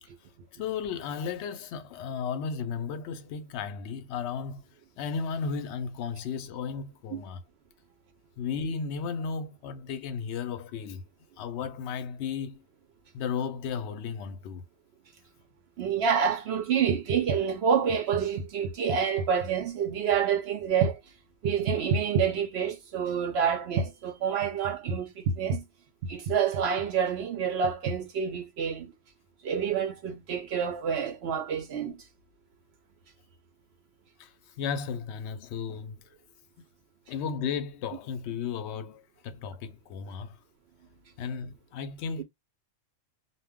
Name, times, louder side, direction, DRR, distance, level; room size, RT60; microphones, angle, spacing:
voice 1, 0.5-4.6 5.0-7.4 8.4-11.0 11.4-12.6 13.1-14.6 34.2-36.0 37.1-40.4 41.2-42.2, left 6 dB, 65° left, 0.7 m, -34 dB
voice 2, 15.8-21.0 21.4-25.6 26.0-28.9 29.4-32.0, right 7 dB, 65° right, 0.6 m, -27 dB
2.2 x 2.2 x 3.4 m
omnidirectional pair, 1.5 m